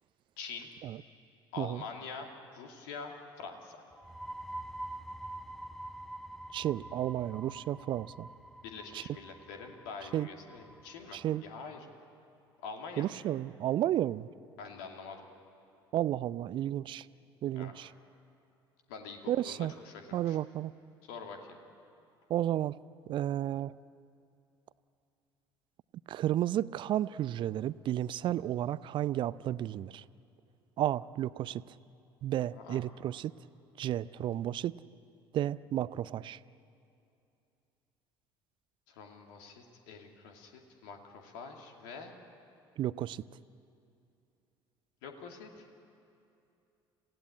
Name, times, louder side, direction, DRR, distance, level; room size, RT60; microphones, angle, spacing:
voice 1, 0.4-0.7 1.5-3.8 8.6-11.8 12.6-13.0 14.6-15.3 17.5-17.7 18.9-20.4 21.1-21.6 32.5-32.8 38.9-42.1 45.0-45.7, left 5 dB, 60° left, 3 dB, 2.4 m, -45 dB
sound 1, 3.9-11.4, right 1 dB, ahead, 0.9 m, -46 dB
voice 2, 6.5-8.3 8.9-9.0 10.1-10.3 11.1-11.4 13.0-14.3 15.9-17.1 17.4-17.9 19.3-19.7 20.1-20.7 22.3-22.8 23.1-23.8 26.1-30.0 30.8-31.8 32.2-33.3 33.8-34.7 35.3-36.4 42.8-43.3, right 12 dB, 40° right, 19 dB, 0.5 m, -32 dB
27.5 x 16.5 x 8.6 m, 2.7 s
figure-of-eight pair, 60°, 13 cm